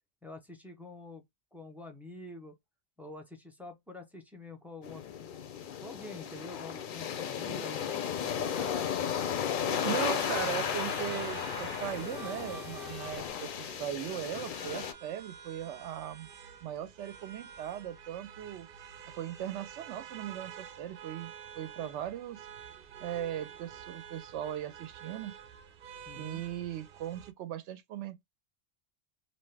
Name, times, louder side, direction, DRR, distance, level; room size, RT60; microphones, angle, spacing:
voice 1, 0.2-1.2 1.5-2.6 3.0-5.3 5.8-8.0 8.2-9.4 10.1-10.4 26.1-26.4, left 2 dB, ahead, 0.4 m, -47 dB
sound 1, 4.8-14.9, left 8 dB, 60° left, 0.6 m, -35 dB
sound 2, 8.1-13.3, left 9 dB, 80° left, 0.9 m, -44 dB
voice 2, 9.6-16.3 16.6-18.7 19.1-22.4 23.0-25.3 26.1-28.2, right 11 dB, 90° right, 0.9 m, -38 dB
sound 3, 9.7-27.3, right 7 dB, 60° right, 0.7 m, -48 dB
2.8 x 2.0 x 3.2 m
omnidirectional pair, 1.2 m